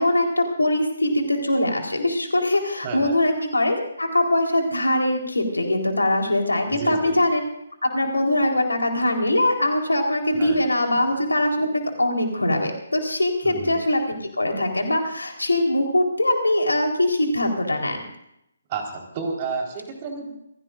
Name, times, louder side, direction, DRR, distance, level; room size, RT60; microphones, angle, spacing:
voice 1, 0.0-7.4 7.9-18.0, left 1 dB, 80° left, 2 dB, 4.0 m, -22 dB
voice 2, 2.8-3.2 6.7-7.1 10.4-10.6 13.4-13.7 18.7-20.3, right 4 dB, 30° right, 1 dB, 4.3 m, -30 dB
28.0 x 16.5 x 2.6 m, 0.78 s
figure-of-eight pair, 140°, 0 cm